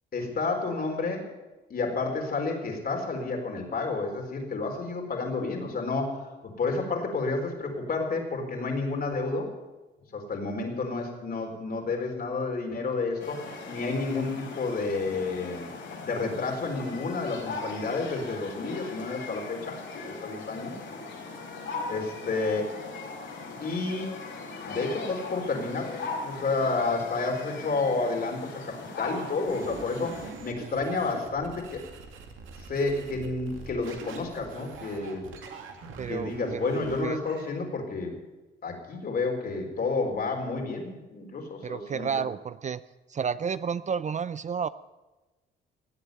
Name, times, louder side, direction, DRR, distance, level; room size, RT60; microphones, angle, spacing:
voice 1, 0.1-1.3 1.7-9.5 10.1-15.7 16.0-19.8 20.1-20.7 21.9-22.8 23.5-24.2 24.7-31.8 32.6-35.3 36.1-38.2 38.6-42.2, left 3 dB, 50° left, 2 dB, 4.3 m, -30 dB
sound 1, 13.2-30.3, left 3 dB, 65° left, 5.1 m, -39 dB
sound 2, 29.5-37.5, right 5 dB, 85° right, 2.5 m, -44 dB
voice 2, 36.0-36.8 37.0-37.2 41.6-42.8 43.1-44.7, right 6 dB, 35° right, 16 dB, 0.5 m, -31 dB
17.5 x 8.2 x 9.2 m, 1.1 s
cardioid pair, 90°, 20 cm